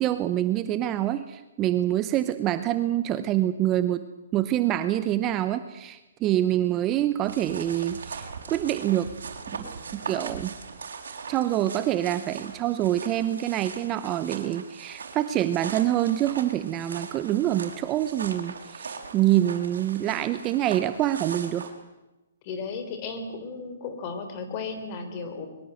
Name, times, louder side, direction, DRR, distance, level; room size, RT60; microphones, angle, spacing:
voice 1, 0.0-4.0 4.3-9.1 9.6-10.5 11.3-21.7, right 13 dB, 20° right, 11 dB, 0.8 m, -26 dB
sound 1, 7.2-21.7, right 5 dB, 80° right, 5.1 m, -40 dB
voice 2, 22.4-25.5, left 4 dB, 30° left, 8 dB, 3.8 m, -34 dB
22.5 x 22.5 x 7.9 m, 1.0 s
hypercardioid pair, 165°, 0 cm